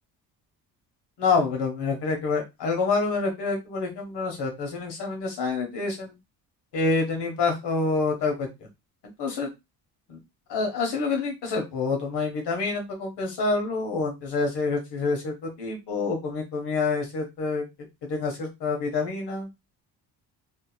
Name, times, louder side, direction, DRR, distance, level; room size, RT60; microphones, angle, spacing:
voice 1, 1.2-6.1 6.7-8.7 9.2-9.5 10.1-10.2 10.5-17.6 18.0-19.5, left 4 dB, 75° left, 3 dB, 1.3 m, -27 dB
2.8 x 2.8 x 2.2 m, 0.22 s
cardioid pair, 85°, 41 cm